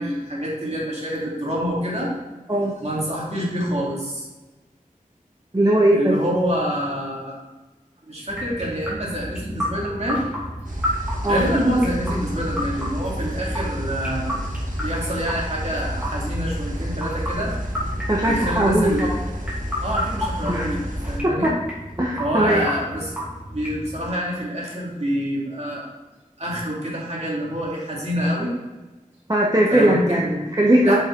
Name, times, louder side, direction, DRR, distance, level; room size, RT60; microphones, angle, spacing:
voice 1, 0.0-2.1 2.8-4.2 5.9-7.4 8.1-10.2 11.3-14.4 14.8-17.5 18.3-19.2 19.8-20.8 21.1-21.5 22.2-23.1 23.5-25.9 26.4-28.5 29.7-30.4 30.8-31.0, equal, 50° right, -4 dB, 2.4 m, -26 dB
voice 2, 5.5-6.2 11.2-11.4 18.1-19.2 20.5-20.7 21.2-21.5 22.0-22.6 29.3-31.0, right 1 dB, 25° right, -3 dB, 1.0 m, -19 dB
sound 1, 8.3-24.1, equal, 10° right, 2.5 m, -32 dB
sound 2, 10.6-21.2, equal, 65° right, 1.6 m, -30 dB
7.9 x 5.6 x 3.9 m, 1.2 s
wide cardioid pair, 60°, 14 cm